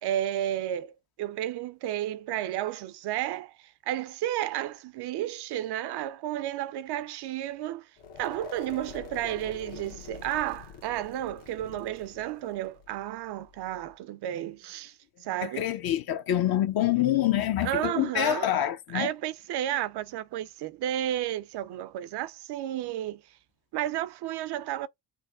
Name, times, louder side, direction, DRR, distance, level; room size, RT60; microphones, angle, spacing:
voice 1, 0.0-3.5 3.9-7.9 8.2-15.0 15.2-15.7 17.6-18.5 18.9-23.2 23.7-24.9, right 12 dB, 55° right, 0.5 m, -32 dB
sound 1, 8.0-13.9, left 6 dB, 70° left, 1.4 m, -46 dB
voice 2, 15.4-19.1, left 12 dB, 50° left, 0.7 m, -26 dB
3.4 x 2.1 x 3.5 m
hypercardioid pair, 55°, 49 cm